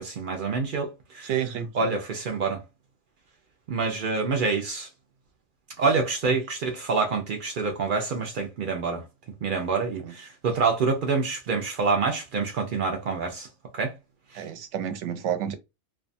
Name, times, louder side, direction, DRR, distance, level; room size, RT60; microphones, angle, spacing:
voice 1, 0.0-1.3 1.7-2.6 3.7-4.9 5.8-9.0 9.4-13.5 13.7-13.9 14.3-14.4, right 4 dB, 85° right, 0.4 m, -27 dB
voice 2, 1.2-1.7 10.0-10.1 14.3-15.5, right 9 dB, 65° right, 0.8 m, -30 dB
2.6 x 2.3 x 2.5 m
omnidirectional pair, 1.5 m